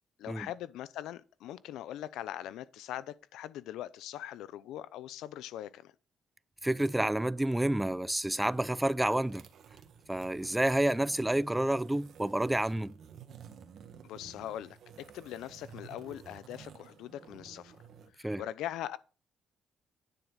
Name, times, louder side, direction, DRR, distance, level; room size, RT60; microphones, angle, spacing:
voice 1, 0.2-5.9 14.0-14.8 15.1-17.8 18.1-19.0, left 12 dB, 90° left, 0.7 m, -41 dB
voice 2, 6.6-9.5 10.1-12.9 18.2-18.4, right 1 dB, 10° right, 0.4 m, -29 dB
sound 1, 8.2-18.1, right 7 dB, 65° right, 1.5 m, -53 dB
9.9 x 9.2 x 4.0 m
cardioid pair, 90°, 0 cm